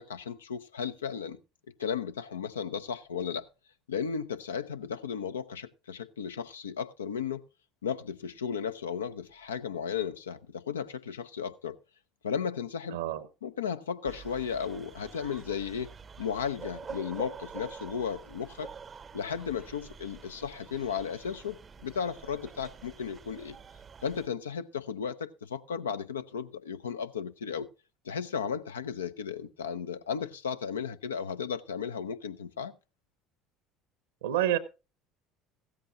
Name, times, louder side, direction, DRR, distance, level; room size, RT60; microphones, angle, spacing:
voice 1, 0.0-1.4 1.8-3.5 3.9-7.4 7.8-11.8 12.2-13.0 13.4-15.9 16.2-18.7 19.1-23.6 24.0-27.7 28.0-32.7, left 7 dB, 80° left, 0.5 m, -35 dB
voice 2, 12.9-13.3 34.2-34.6, right 12 dB, 75° right, 0.9 m, -28 dB
sound 1, 14.1-24.3, right 6 dB, 35° right, 0.6 m, -47 dB
15.0 x 14.0 x 2.5 m
figure-of-eight pair, 65°, 0 cm